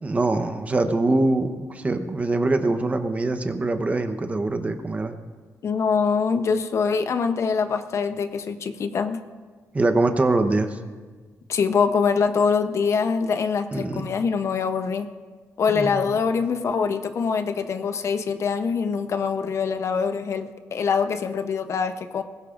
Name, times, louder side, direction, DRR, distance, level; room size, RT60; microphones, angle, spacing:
voice 1, 0.0-5.2 9.7-10.8 13.7-14.0 15.7-15.9, right 2 dB, 25° right, 8 dB, 0.9 m, -23 dB
voice 2, 5.6-9.2 11.5-15.1 15.6-22.2, left 5 dB, 50° left, 9 dB, 0.7 m, -24 dB
20.5 x 17.0 x 2.5 m, 1.4 s
cardioid pair, 125°, 6 cm